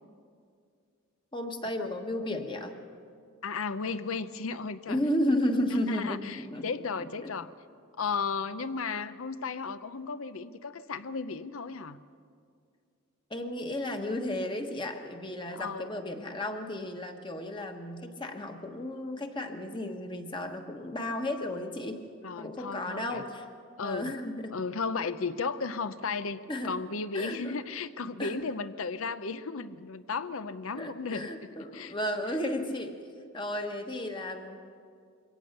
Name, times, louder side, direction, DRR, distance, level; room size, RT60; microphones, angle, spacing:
voice 1, 1.3-2.8 4.9-6.7 7.2-7.3 13.3-22.0 22.4-23.5 23.8-24.6 26.5-26.7 27.1-27.5 28.2-28.4 30.7-32.9 33.3-34.6, left 1 dB, 25° left, 4 dB, 1.3 m, -33 dB
voice 2, 3.4-5.0 5.9-7.5 8.0-12.0 15.5-15.9 22.2-23.2 23.8-24.1 24.5-31.3 31.7-31.9, left 4 dB, 75° left, 13 dB, 0.7 m, -34 dB
22.5 x 17.5 x 6.6 m, 2.3 s
head